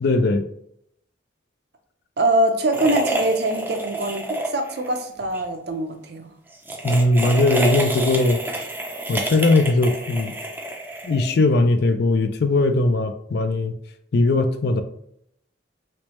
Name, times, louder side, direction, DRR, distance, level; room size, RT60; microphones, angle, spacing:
voice 1, 0.0-0.4 6.8-8.4 9.1-10.3 11.0-13.7 14.1-14.8, left 2 dB, 60° left, 8 dB, 0.4 m, -19 dB
voice 2, 2.2-6.3, right 1 dB, 60° right, 5 dB, 0.6 m, -23 dB
sound 1, 2.7-4.9 5.2-5.4 6.5-11.5, right 1 dB, 10° right, 0.5 m, -28 dB
3.2 x 3.1 x 3.0 m, 0.71 s
head